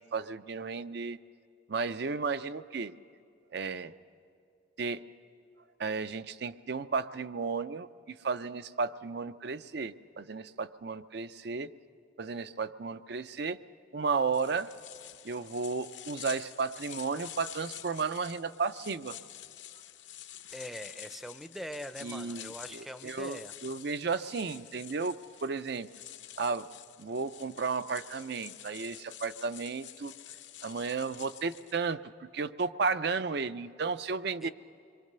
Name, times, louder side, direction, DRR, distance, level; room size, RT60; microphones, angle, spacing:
voice 1, 0.1-1.2 1.7-2.9 3.5-3.9 4.8-5.1 5.8-11.7 12.2-13.6 13.9-14.7 15.2-19.2 22.0-25.2 25.4-25.9 26.4-26.7 27.0-30.1 30.6-34.5, right 4 dB, 55° right, 13 dB, 0.5 m, -33 dB
sound 1, 14.3-31.8, left 12 dB, 70° left, 0.8 m, -48 dB
voice 2, 20.5-23.5 34.4-34.5, equal, ahead, 10 dB, 0.6 m, -42 dB
26.5 x 23.0 x 6.7 m, 2.5 s
head